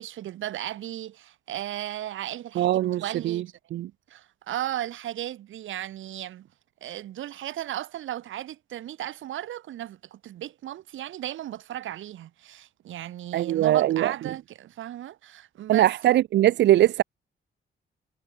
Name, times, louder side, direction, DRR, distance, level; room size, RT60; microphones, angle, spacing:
voice 1, 0.0-3.5 4.1-6.5 6.8-15.9, right 12 dB, 85° right, 6.6 m, -35 dB
voice 2, 2.6-3.4 3.7-3.9 13.3-14.1 15.7-17.0, right 13 dB, 65° right, 0.6 m, -21 dB
cardioid pair, 180°, 20 cm